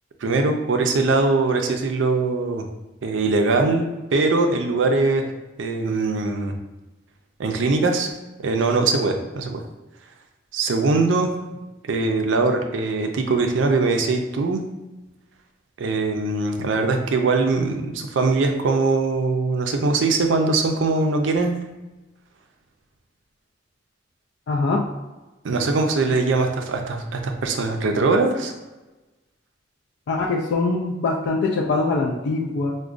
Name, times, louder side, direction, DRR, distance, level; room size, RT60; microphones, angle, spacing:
voice 1, 0.2-2.7 3.0-5.2 5.6-6.5 7.4-8.1 8.4-9.6 10.5-11.3 11.8-14.6 15.8-21.5 25.4-28.5, right 3 dB, 85° right, 5 dB, 0.4 m, -21 dB
voice 2, 24.5-24.9 30.1-32.8, left 3 dB, 65° left, -2 dB, 0.3 m, -23 dB
4.8 x 2.2 x 2.4 m, 1.1 s
head